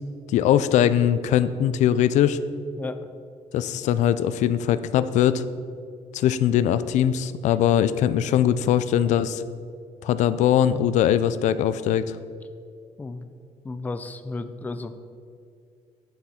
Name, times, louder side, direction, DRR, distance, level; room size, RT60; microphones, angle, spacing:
voice 1, 0.3-2.4 3.5-5.4 6.1-9.4 10.0-12.2, left 10 dB, 85° left, 13 dB, 0.4 m, -21 dB
voice 2, 2.8-3.1 7.5-7.6 13.0-13.3 13.6-14.9, left 3 dB, 15° left, 10 dB, 0.4 m, -33 dB
8.6 x 7.8 x 4.2 m, 2.3 s
cardioid pair, 160°, 12 cm